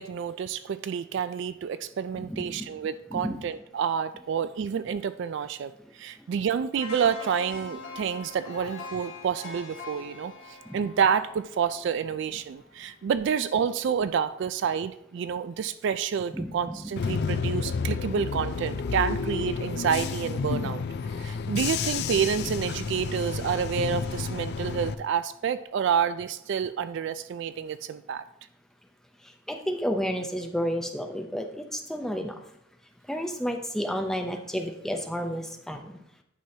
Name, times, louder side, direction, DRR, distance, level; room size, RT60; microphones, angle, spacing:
voice 1, 0.0-10.3 10.7-20.8 21.2-28.2, right 7 dB, 60° right, 13 dB, 0.3 m, -29 dB
voice 2, 2.1-2.7 3.1-3.4 10.7-10.8 16.3-16.9 29.5-32.4 33.1-35.8, equal, ahead, 4 dB, 0.6 m, -31 dB
sound 1, 6.7-12.8 13.2-13.3, left 3 dB, 90° left, 1.7 m, -43 dB
Bus / Engine, 17.0-24.9, left 5 dB, 55° left, 0.3 m, -30 dB
9.4 x 6.1 x 2.8 m, 0.79 s
head